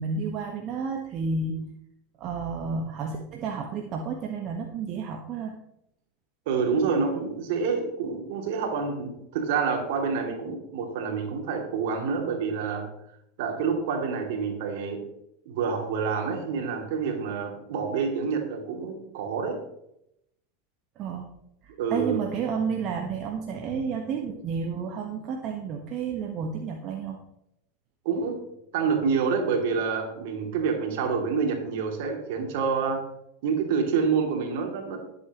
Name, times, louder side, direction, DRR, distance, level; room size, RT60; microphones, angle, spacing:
voice 1, 0.0-1.7 2.2-5.5 21.0-21.3 21.6-27.2, right 5 dB, 45° right, 2 dB, 1.5 m, -31 dB
voice 2, 6.5-12.9 13.4-15.0 15.4-19.6 21.8-22.2 28.0-28.4 28.7-33.0 33.4-35.0, right 5 dB, 60° right, 3 dB, 2.8 m, -27 dB
19.5 x 8.2 x 3.1 m, 0.81 s
hypercardioid pair, 85°, 0 cm